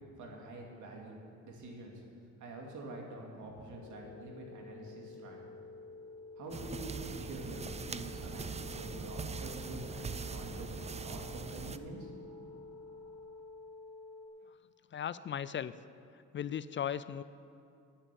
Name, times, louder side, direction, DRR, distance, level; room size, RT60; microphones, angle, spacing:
voice 1, 0.2-1.1 1.4-2.0 2.4-5.4 6.4-12.1, right 2 dB, 75° right, 0 dB, 2.6 m, -46 dB
sound 1, 3.7-14.3, left 3 dB, 60° left, 1.7 m, -50 dB
sound 2, 6.5-11.8, right 5 dB, 20° right, 0.5 m, -42 dB
voice 2, 14.9-15.7 16.1-17.2, left 9 dB, 40° left, 16 dB, 0.4 m, -37 dB
10.0 x 8.6 x 8.5 m, 2.6 s
cardioid pair, 90°, 30 cm